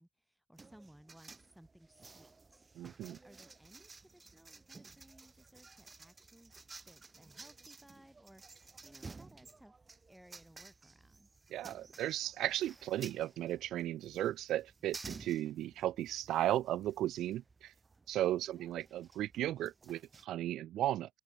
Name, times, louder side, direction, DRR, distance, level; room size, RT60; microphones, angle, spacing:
voice 1, 0.0-2.7 3.0-6.5 6.9-9.8 10.1-11.5 18.5-18.9, right 1 dB, 5° right, 4.4 m, -61 dB
sound 1, 0.6-20.2, right 3 dB, 25° right, 1.4 m, -55 dB
voice 2, 2.8-3.2 11.5-17.7 18.1-21.2, right 13 dB, 80° right, 0.5 m, -35 dB
open air
cardioid pair, 90°, 0 cm